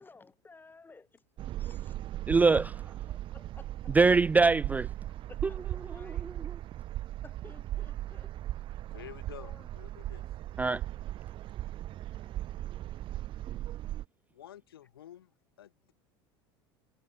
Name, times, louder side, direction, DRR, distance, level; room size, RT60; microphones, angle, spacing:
voice 1, 0.0-1.9 2.6-2.7 3.1-3.9 5.3-6.3 7.2-8.3 9.4-9.7 12.0-12.4, left 3 dB, 15° left, 7.0 m, -56 dB
sound 1, 1.4-14.0, right 14 dB, 45° right, 0.9 m, -38 dB
voice 2, 2.3-2.7 3.9-4.9 5.9-6.3 10.6-10.8, right 4 dB, 15° right, 0.3 m, -23 dB
voice 3, 8.9-10.2 14.3-15.9, left 11 dB, 85° left, 7.4 m, -50 dB
hypercardioid pair, 90°, 12 cm